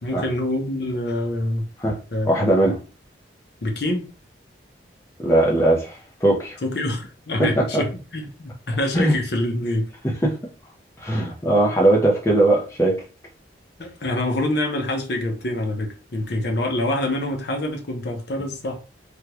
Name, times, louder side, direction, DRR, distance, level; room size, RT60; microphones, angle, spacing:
voice 1, 0.0-1.7 2.1-2.3 2.6-2.7 3.6-4.1 6.6-9.9 13.8-18.8, left 1 dB, 60° left, 0.8 m, -26 dB
voice 2, 2.2-2.8 5.2-6.0 6.2-6.6 7.4-7.8 8.9-9.2 10.2-10.4 11.0-13.0, right 1 dB, 15° left, 0.6 m, -19 dB
3.5 x 2.3 x 2.9 m
head